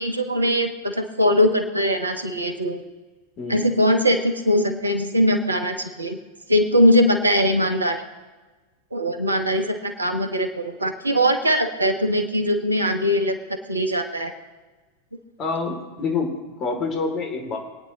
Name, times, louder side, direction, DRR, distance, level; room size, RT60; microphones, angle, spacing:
voice 1, 0.0-2.8 3.5-6.2 6.5-8.0 8.9-13.4 13.7-14.3, equal, 80° right, 6 dB, 1.3 m, -21 dB
voice 2, 15.4-17.6, left 4 dB, 35° left, 2 dB, 2.7 m, -27 dB
25.5 x 9.6 x 2.9 m, 1.3 s
figure-of-eight pair, 90°, 0 cm